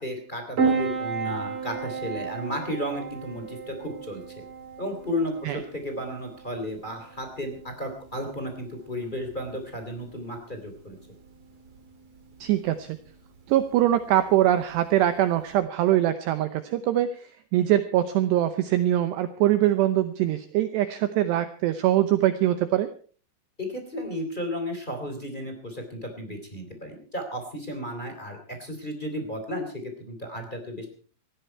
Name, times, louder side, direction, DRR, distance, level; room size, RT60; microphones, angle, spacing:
voice 1, 0.0-4.4 4.8-11.0 23.6-30.9, equal, 15° left, 4 dB, 2.3 m, -33 dB
Piano, 0.6-15.5, right 5 dB, 35° right, 3.2 m, -35 dB
voice 2, 12.4-13.0 13.5-17.3 17.5-22.9, right 13 dB, 80° right, 11 dB, 2.5 m, -23 dB
19.5 x 15.0 x 4.5 m, 0.42 s
omnidirectional pair, 5.9 m